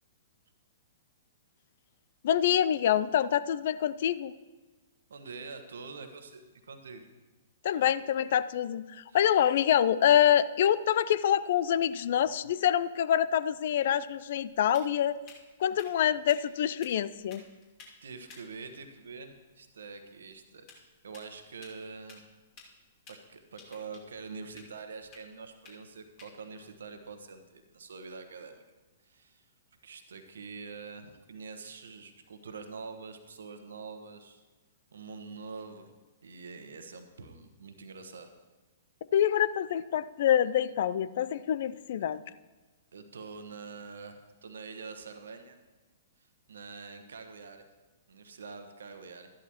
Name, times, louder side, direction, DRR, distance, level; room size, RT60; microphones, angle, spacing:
voice 1, 2.2-4.3 7.6-15.2 15.6-17.4 39.1-42.2, left 10 dB, 55° left, 15 dB, 0.4 m, -26 dB
voice 2, 5.1-7.1 9.1-9.2 18.0-22.2 23.1-28.6 29.0-29.4 29.8-34.4 34.9-35.9 36.2-38.3 42.9-45.6 46.2-47.6 48.1-49.3, right 4 dB, 65° right, 7 dB, 1.1 m, -45 dB
sound 1, 14.0-28.2, left 4 dB, 35° left, 2.5 m, -58 dB
13.0 x 11.5 x 3.0 m, 1.2 s
figure-of-eight pair, 110°, 0 cm